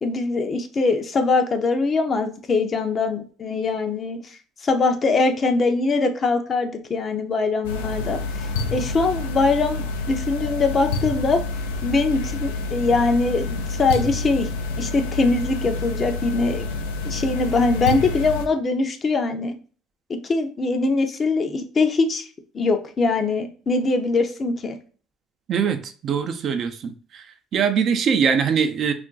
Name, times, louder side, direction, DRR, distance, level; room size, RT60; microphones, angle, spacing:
voice 1, 0.0-4.3 4.6-11.4 11.8-14.5 14.8-16.7 17.0-19.5 20.1-22.2 22.5-24.8, left 3 dB, 40° left, 0.6 m, -22 dB
sound 1, 7.6-18.5, left 3 dB, 85° left, 0.3 m, -28 dB
voice 2, 25.5-27.2 27.5-28.9, right 6 dB, 55° right, 0.4 m, -22 dB
2.5 x 2.2 x 3.7 m
hypercardioid pair, 60°, 0 cm